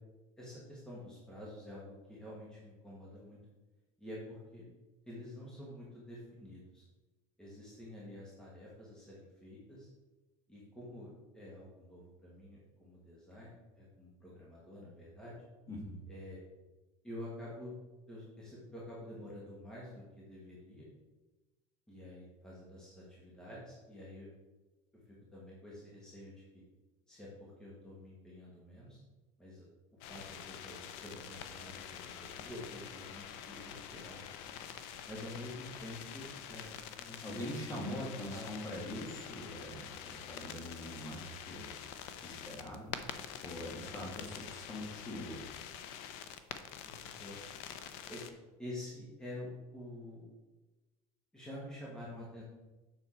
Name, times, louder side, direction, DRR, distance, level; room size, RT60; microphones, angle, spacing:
voice 1, 0.4-3.4 4.0-4.7 5.0-6.8 7.4-9.9 10.5-15.3 16.1-16.4 17.0-17.8 18.1-20.9 21.9-24.3 25.0-26.4 27.1-29.0 29.4-29.7 30.0-34.2 35.1-38.5 46.8-47.4 48.1-48.2 48.6-50.3 51.3-52.4, left 1 dB, 5° left, -6 dB, 1.3 m, -48 dB
voice 2, 15.7-16.0 37.2-43.0 43.4-45.4, left 1 dB, 25° left, -2 dB, 1.8 m, -43 dB
sound 1, 30.0-48.3, left 9 dB, 75° left, 0.7 m, -46 dB
7.1 x 5.6 x 4.3 m, 1.1 s
cardioid pair, 165°, 14 cm